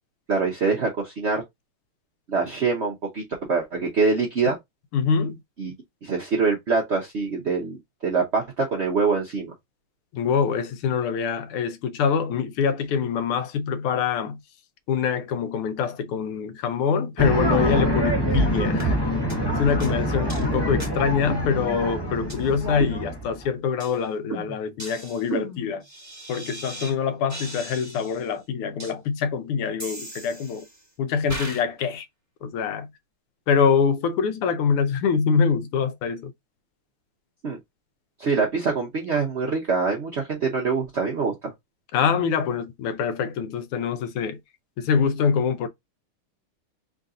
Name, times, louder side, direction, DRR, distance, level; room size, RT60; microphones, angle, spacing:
voice 1, 0.3-1.4 2.3-3.2 3.5-4.6 5.6-5.7 6.0-9.5 37.4-37.6 38.2-41.5, right 4 dB, 65° right, 0.6 m, -24 dB
voice 2, 4.9-5.3 10.1-14.4 14.9-19.0 19.6-25.8 26.3-30.7 31.0-32.0 32.4-32.9 33.5-36.3 41.9-44.4 44.8-45.7, left 6 dB, 85° left, 1.6 m, -24 dB
sound 1, 17.2-23.5, equal, 25° left, 0.5 m, -26 dB
sound 2, 18.3-18.5 18.8-19.0 19.3-19.4 19.8-19.9 20.3-20.4 20.8-20.9 21.3-21.9 22.3-22.4 22.8-23.4 23.8-23.9 24.3-26.9 27.3-28.2 28.8-28.9 29.8-30.8 31.3-31.6, right 3 dB, 10° right, 0.9 m, -33 dB
3.8 x 2.6 x 3.6 m
omnidirectional pair, 2.4 m